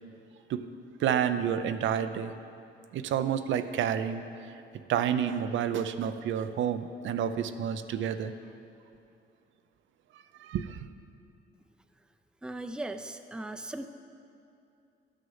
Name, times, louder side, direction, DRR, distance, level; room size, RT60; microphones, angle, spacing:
voice 1, 1.0-2.3 2.9-4.2 4.9-8.3 10.4-10.9, right 9 dB, 75° right, 10 dB, 0.5 m, -29 dB
voice 2, 12.4-13.9, right 1 dB, 5° right, 8 dB, 0.5 m, -38 dB
12.0 x 6.4 x 5.6 m, 2.6 s
cardioid pair, 90°, 20 cm